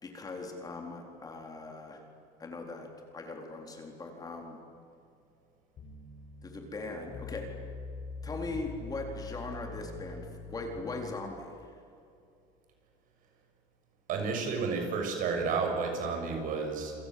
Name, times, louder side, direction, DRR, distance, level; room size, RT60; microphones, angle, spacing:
voice 1, 0.0-2.0 2.4-2.9 3.1-4.6 6.4-7.5 8.2-11.5, left 3 dB, 20° left, 2 dB, 4.1 m, -40 dB
sound 1, 5.8-11.1, left 3 dB, 40° left, 5.7 m, -44 dB
voice 2, 14.1-16.9, right 4 dB, 55° right, 3 dB, 6.8 m, -31 dB
28.5 x 26.0 x 7.8 m, 2.5 s
cardioid pair, 145°, 17 cm